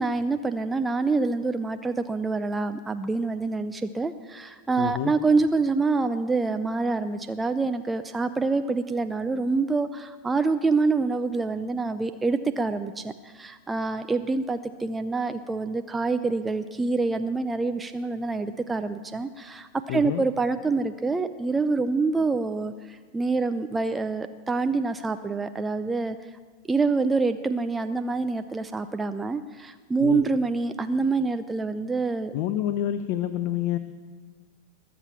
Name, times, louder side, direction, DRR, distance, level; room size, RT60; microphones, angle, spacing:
voice 1, 0.0-26.2 26.7-32.3, right 3 dB, 10° right, 9 dB, 0.5 m, -26 dB
voice 2, 4.8-5.1 19.9-20.2 30.0-30.2 32.3-33.8, left 12 dB, 45° left, 11 dB, 0.6 m, -28 dB
21.0 x 7.6 x 7.1 m, 1.5 s
figure-of-eight pair, 90°, 0 cm